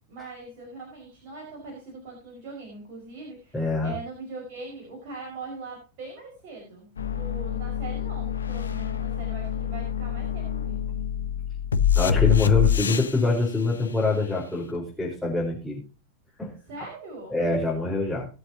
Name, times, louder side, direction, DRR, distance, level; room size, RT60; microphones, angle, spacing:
voice 1, 0.1-11.0 16.7-17.4, right 3 dB, 45° right, -1 dB, 5.5 m, -41 dB
voice 2, 3.5-3.9 11.9-15.8 16.4-16.6 17.3-18.3, left 3 dB, 5° left, -5 dB, 4.8 m, -25 dB
sound 1, 7.0-13.2 14.7-14.8, left 9 dB, 70° left, 0.9 m, -26 dB
21.0 x 7.9 x 2.9 m, 0.31 s
figure-of-eight pair, 90°, 0 cm